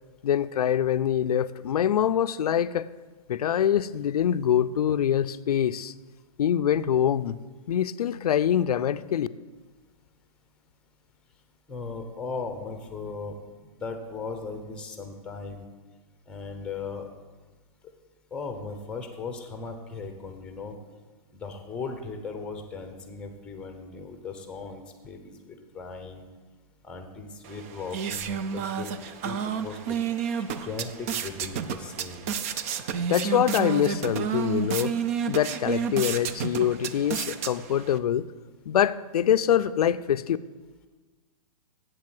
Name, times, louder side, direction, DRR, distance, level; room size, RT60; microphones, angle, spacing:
voice 1, 0.2-2.9 3.3-5.9 6.4-7.3 7.7-9.3 33.1-35.0 35.3-38.3 38.7-40.4, left 9 dB, 90° left, 14 dB, 0.5 m, -24 dB
voice 2, 11.7-13.3 13.8-15.6 16.3-17.1 18.3-20.8 21.3-26.3 26.8-30.0 30.6-32.3 32.9-33.1, left 4 dB, 5° left, 6 dB, 0.8 m, -37 dB
sound 1, 27.4-38.0, right 7 dB, 25° right, 0.3 m, -31 dB
8.1 x 7.6 x 7.7 m, 1.3 s
hypercardioid pair, 160°, 19 cm